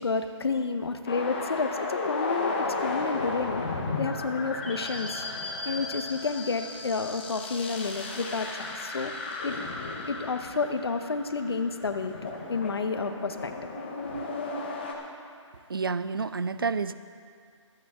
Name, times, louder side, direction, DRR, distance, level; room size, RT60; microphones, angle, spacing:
voice 1, 0.0-3.6 4.0-5.2 5.6-9.1 9.4-9.5 10.1-12.1 12.4-13.5 14.1-14.3, left 4 dB, 50° left, 8 dB, 0.9 m, -30 dB
sound 1, 1.1-14.9, left 3 dB, 20° left, 1.0 m, -34 dB
voice 2, 15.7-16.9, right 4 dB, 45° right, 13 dB, 0.4 m, -29 dB
25.0 x 8.9 x 3.6 m, 2.2 s
hypercardioid pair, 175°, 16 cm